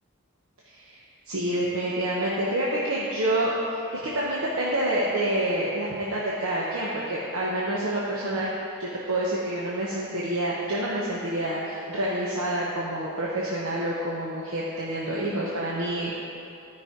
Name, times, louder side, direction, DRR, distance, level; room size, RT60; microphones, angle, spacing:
voice 1, 0.6-8.5 8.8-16.1, right 1 dB, 85° right, -6 dB, 1.1 m, -28 dB
12.5 x 5.4 x 4.6 m, 2.7 s
head